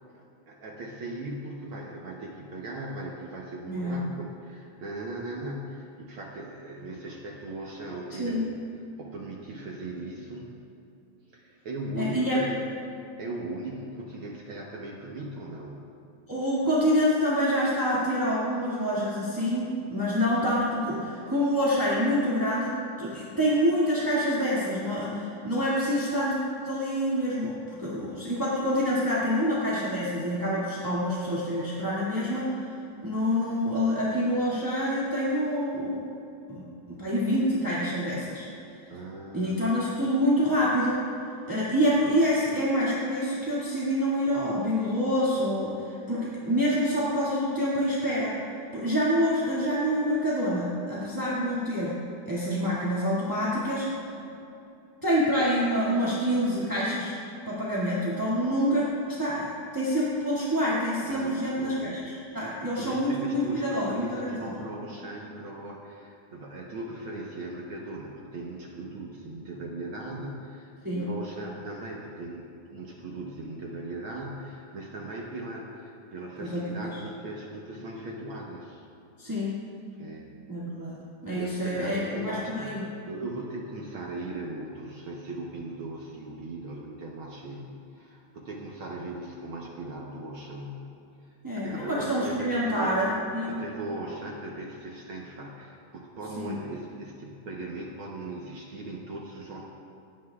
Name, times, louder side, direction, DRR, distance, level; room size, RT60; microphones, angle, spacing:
voice 1, 0.1-8.6 9.0-10.6 11.3-12.6 13.2-15.9 38.9-39.8 61.0-62.0 62.4-70.7 71.0-78.8 80.0-80.3 81.3-91.0 91.6-93.0 93.5-99.6, right 2 dB, 70° right, -2 dB, 1.2 m, -38 dB
voice 2, 3.7-4.1 8.2-8.4 11.9-12.4 16.3-26.4 26.6-32.7 33.0-36.0 36.5-38.5 39.3-41.0 41.5-48.3 48.7-52.0 52.3-54.0 55.0-57.1 57.4-64.5 70.8-71.1 76.4-77.0 79.2-79.5 80.5-81.0 81.2-82.8 91.4-93.6 96.4-96.6, equal, 10° right, -9 dB, 1.4 m, -27 dB
28.0 x 10.0 x 2.4 m, 2.7 s
omnidirectional pair, 3.7 m